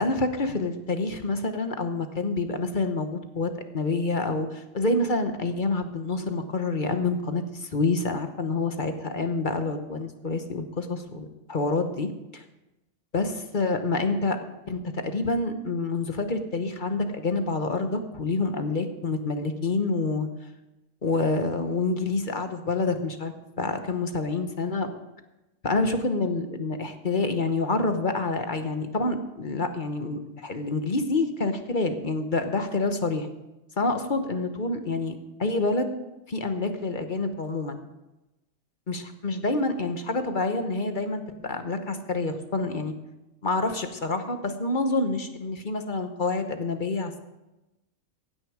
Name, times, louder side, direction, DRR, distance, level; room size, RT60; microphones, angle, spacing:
voice 1, 0.0-12.1 13.1-14.4 14.7-20.3 21.0-24.9 25.6-33.3 33.8-35.9 36.3-37.8 38.9-42.9 43.4-47.2, left 3 dB, 40° left, 7 dB, 1.1 m, -27 dB
16.0 x 9.6 x 4.9 m, 1.0 s
omnidirectional pair, 1.3 m